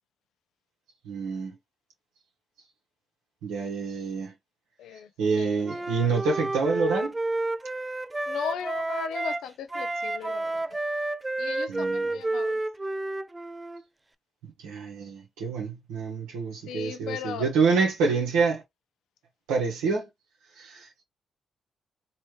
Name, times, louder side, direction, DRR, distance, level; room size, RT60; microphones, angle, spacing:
voice 1, 1.0-1.5 3.4-4.3 5.2-7.1 11.7-12.1 14.4-18.6 19.5-20.1 20.6-21.0, right 4 dB, 85° right, 0.9 m, -27 dB
voice 2, 4.8-5.1 5.4-5.9 8.3-10.8 11.4-12.6 16.7-17.5, left 7 dB, 80° left, 0.5 m, -37 dB
Wind instrument woodwind instrument, 5.6-9.5 9.7-13.8, right 2 dB, 20° right, 0.4 m, -30 dB
3.1 x 2.9 x 3.0 m
supercardioid pair, 50°, 0 cm